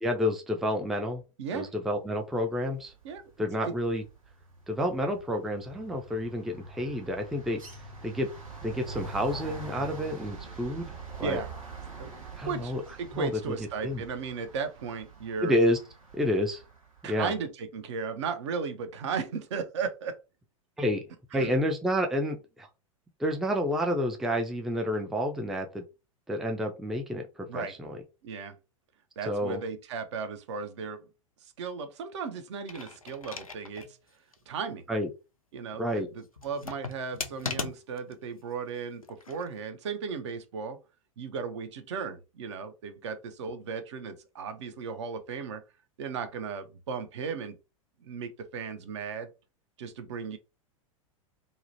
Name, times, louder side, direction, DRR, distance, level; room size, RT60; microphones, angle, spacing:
voice 1, 0.0-1.2 1.5-2.9 3.4-4.0 4.7-7.6 8.0-8.3 8.6-11.4 12.4-12.8 13.1-13.5 13.8-14.0 15.4-15.8 16.1-16.6 17.1-17.3 20.8-21.0 21.3-22.7 23.2-25.8 26.3-27.2 27.5-28.0 29.3-29.6 34.9-35.1 35.8-36.1, equal, ahead, 3 dB, 0.3 m, -29 dB
voice 2, 1.4-1.7 3.0-3.2 3.6-3.7 11.2-11.5 12.0-12.7 13.0-15.6 17.0-20.2 21.3-21.5 27.5-27.7 28.2-28.6 29.2-31.0 31.6-33.9 34.5-34.8 35.5-40.8 41.2-45.6 46.0-47.6 48.0-49.3 49.8-50.4, right 5 dB, 55° right, 8 dB, 0.5 m, -35 dB
sound 1, 2.9-3.3 3.6-16.7, right 3 dB, 75° right, 1.0 m, -44 dB
sound 2, 32.5-33.9 34.3-34.4 36.4-38.1 39.0-39.5, left 4 dB, 90° left, 0.4 m, -38 dB
2.7 x 2.0 x 2.7 m, 0.29 s
figure-of-eight pair, 95°, 17 cm